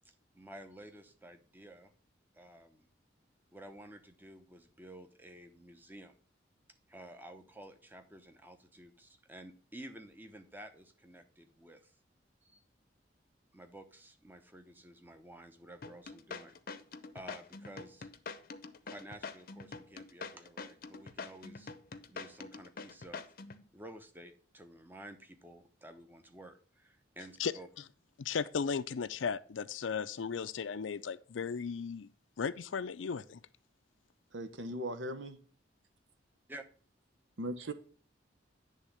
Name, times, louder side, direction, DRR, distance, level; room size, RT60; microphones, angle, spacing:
voice 1, 0.3-1.9 2.3-2.9 3.5-6.1 6.9-11.9 12.4-12.6 13.5-16.5 17.1-18.1 18.9-21.7 22.1-23.3 23.7-27.7 36.5-36.6, right 1 dB, 10° right, 0.8 m, -52 dB
sound 1, 15.8-23.6, left 4 dB, 50° left, 0.7 m, -45 dB
voice 2, 28.2-32.1 32.4-33.4, left 6 dB, 85° left, 0.5 m, -36 dB
voice 3, 34.3-35.4 37.4-37.7, right 1 dB, 80° right, 1.0 m, -38 dB
9.8 x 3.6 x 7.2 m
head